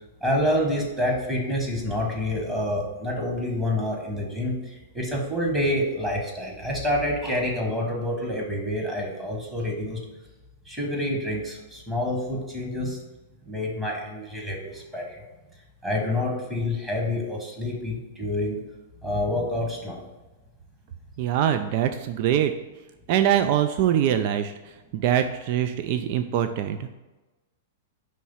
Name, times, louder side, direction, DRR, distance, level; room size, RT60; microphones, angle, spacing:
voice 1, 0.2-10.0 10.7-13.0 13.5-15.2 15.8-18.6 19.0-20.0, left 1 dB, 10° right, -1 dB, 1.5 m, -27 dB
voice 2, 21.2-22.5 23.1-24.5 24.9-26.9, right 10 dB, 50° right, 9 dB, 0.4 m, -23 dB
5.4 x 3.1 x 5.6 m, 1.1 s
hypercardioid pair, 120°, 0 cm